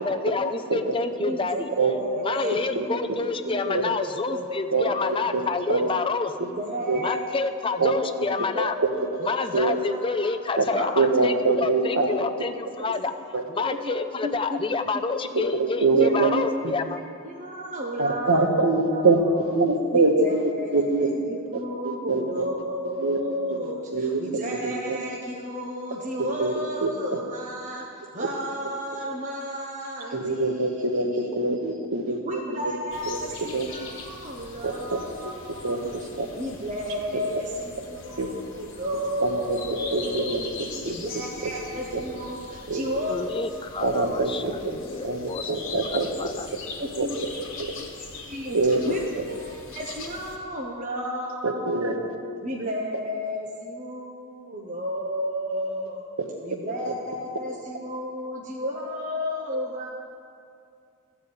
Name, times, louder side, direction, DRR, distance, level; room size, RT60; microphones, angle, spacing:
voice 1, 0.0-1.7 2.2-6.3 7.0-8.8 9.2-13.1 13.5-17.0 43.1-46.5, left 4 dB, 25° left, 8 dB, 0.4 m, -28 dB
voice 2, 1.2-5.5 6.4-7.4 7.6-8.1 8.5-9.2 9.5-10.3 10.7-10.9 13.6-13.9 14.2-14.3 14.9-15.0 15.3-15.5 15.9-16.5 16.9-19.0 19.3-19.5 19.9-27.9 28.1-30.7 30.9-31.6 32.2-36.1 36.4-40.3 40.8-44.1 46.8-47.1 47.7-48.6 48.8-49.0 49.4-52.1 52.4-56.1 56.4-59.9, equal, 35° right, -2 dB, 0.9 m, -33 dB
voice 3, 2.7-3.2 3.7-3.8 4.7-4.8 5.3-5.4 5.7-5.9 6.4-6.5 6.9-7.0 7.8-8.5 9.5-9.7 10.6-10.7 11.0-12.2 13.3-13.4 15.5-16.7 18.0-21.1 21.5-22.5 23.0-23.2 23.6-25.0 26.4-26.5 26.8-26.9 30.1-32.8 33.1-33.2 33.5-33.7 34.6-35.3 35.6-35.8 36.2-36.3 37.1-37.2 38.2-38.3 39.2-39.6 39.9-40.4 40.9-41.0 41.7-42.0 42.7-42.8 43.8-44.3 44.6-44.7 45.0-46.1 47.0-47.1 47.6-47.7 48.5-48.8 51.4-52.0 56.2-56.3 56.8-56.9, right 3 dB, 70° right, 3 dB, 1.2 m, -24 dB
sound 1, 32.9-50.4, left 3 dB, 60° left, 1.3 m, -41 dB
13.5 x 4.8 x 8.5 m, 2.4 s
head